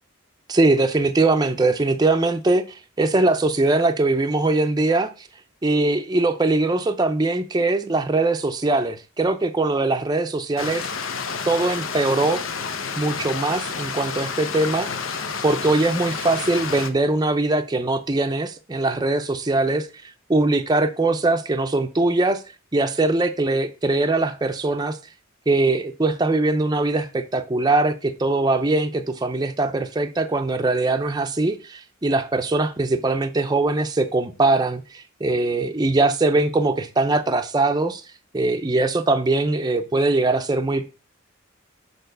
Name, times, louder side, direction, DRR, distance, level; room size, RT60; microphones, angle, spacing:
voice 1, 0.5-5.1 5.6-10.9 11.5-12.4 13.0-14.9 15.4-19.9 20.3-22.4 22.7-25.0 25.5-38.0 38.3-40.9, right 2 dB, 20° right, 0.6 m, -21 dB
Stream, 10.6-16.9, left 5 dB, 85° left, 0.9 m, -30 dB
6.9 x 4.1 x 6.6 m
head